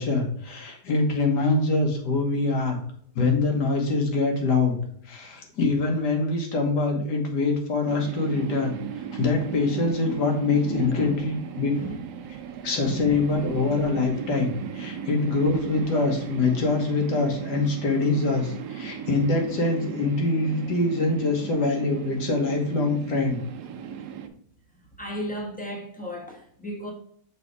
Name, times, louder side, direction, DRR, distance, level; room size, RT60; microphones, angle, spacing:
voice 1, 0.0-2.8 3.2-4.8 5.1-8.8 9.1-11.7 12.6-23.4, left 3 dB, 75° left, 1.9 m, -24 dB
sound 1, 7.9-24.3, right 8 dB, 80° right, 1.2 m, -37 dB
voice 2, 9.4-10.2 10.5-11.3 11.7-12.0 12.8-13.2 25.0-26.9, equal, 5° left, 1.2 m, -34 dB
6.1 x 3.5 x 4.6 m
omnidirectional pair, 1.8 m